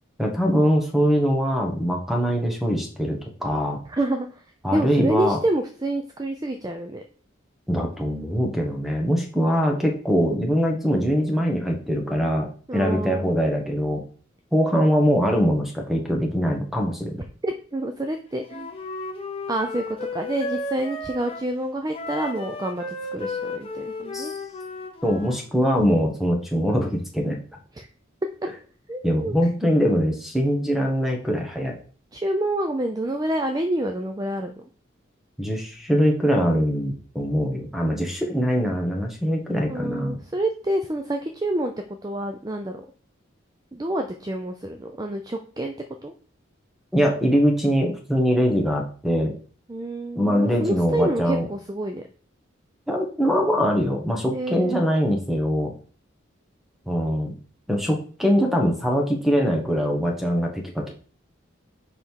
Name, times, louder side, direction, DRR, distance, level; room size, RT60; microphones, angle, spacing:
voice 1, 0.2-3.8 4.6-5.4 7.7-14.1 14.5-17.2 24.1-24.4 25.0-27.4 29.0-31.8 35.4-40.2 46.9-49.3 50.1-51.5 52.9-55.7 56.9-57.3 57.7-60.9, equal, ahead, 2 dB, 1.2 m, -22 dB
voice 2, 3.9-4.3 4.7-7.0 12.7-13.3 17.4-18.7 19.5-19.8 20.1-22.9 23.1-24.3 27.8-27.9 28.9-29.4 32.1-34.5 39.7-41.7 42.0-42.9 43.7-45.7 46.0-46.1 49.7-52.1 54.3-54.8, right 1 dB, 20° right, 5 dB, 0.4 m, -27 dB
Wind instrument woodwind instrument, 18.5-21.5 21.9-25.4, left 2 dB, 30° left, 1.1 m, -33 dB
5.5 x 5.0 x 4.6 m, 0.42 s
head